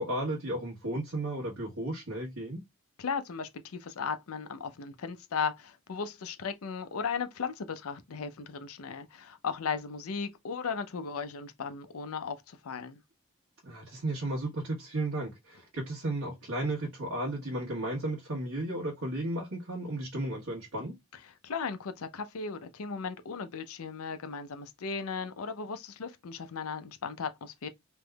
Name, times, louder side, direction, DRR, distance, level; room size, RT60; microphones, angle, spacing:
voice 1, 0.0-2.6 13.6-21.0, right 1 dB, 85° right, 1.3 m, -34 dB
voice 2, 3.0-13.0 21.3-27.7, left 5 dB, 90° left, 0.6 m, -36 dB
3.4 x 3.0 x 2.2 m
head